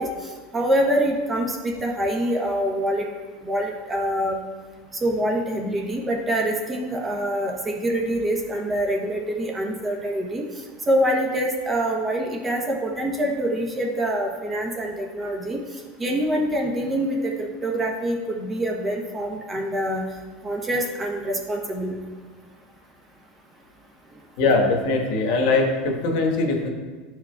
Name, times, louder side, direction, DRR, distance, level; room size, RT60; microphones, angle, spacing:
voice 1, 0.0-3.1 3.4-4.4 5.0-10.4 10.9-20.1 20.4-22.0, right 1 dB, 15° right, 0 dB, 0.9 m, -25 dB
voice 2, 24.4-26.7, left 3 dB, 65° left, 2 dB, 1.3 m, -21 dB
11.0 x 4.7 x 2.3 m, 1.4 s
supercardioid pair, 140°, 0 cm